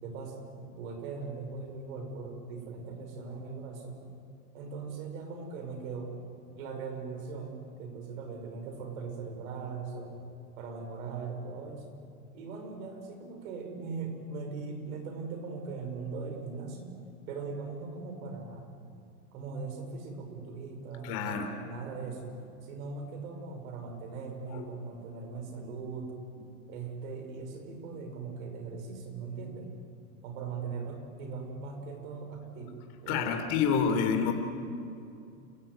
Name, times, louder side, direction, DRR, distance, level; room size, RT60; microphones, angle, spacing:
voice 1, 0.0-4.0 4.5-6.1 6.6-10.2 10.6-12.0 12.3-16.9 17.3-18.7 19.3-22.4 22.6-26.2 26.7-29.7 30.2-32.8 33.0-33.4, right 4 dB, 65° right, 5 dB, 5.5 m, -40 dB
voice 2, 21.0-21.5 24.5-24.7 33.1-34.3, left 6 dB, 45° left, 5 dB, 3.7 m, -28 dB
28.5 x 15.5 x 9.4 m, 2.6 s
supercardioid pair, 140°, 44 cm